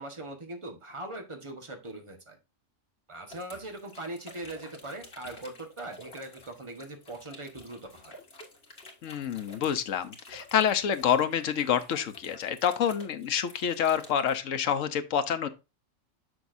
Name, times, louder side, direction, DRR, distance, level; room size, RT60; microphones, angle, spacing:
voice 1, 0.0-2.4 3.1-8.2, right 2 dB, 25° right, 1.4 m, -41 dB
sound 1, 3.3-14.4, left 1 dB, 55° left, 2.0 m, -51 dB
voice 2, 9.0-15.5, left 8 dB, 85° left, 1.2 m, -27 dB
7.1 x 6.4 x 2.6 m
omnidirectional pair, 1.3 m